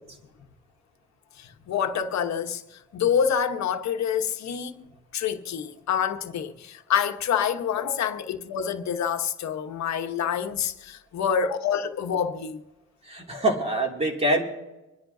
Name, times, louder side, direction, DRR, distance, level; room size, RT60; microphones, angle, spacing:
voice 1, 1.4-4.9 5.1-12.6, left 8 dB, 65° left, 1.2 m, -27 dB
voice 2, 13.1-14.4, right 1 dB, 20° right, 2.6 m, -24 dB
25.5 x 10.5 x 2.7 m
cardioid pair, 90°, 30 cm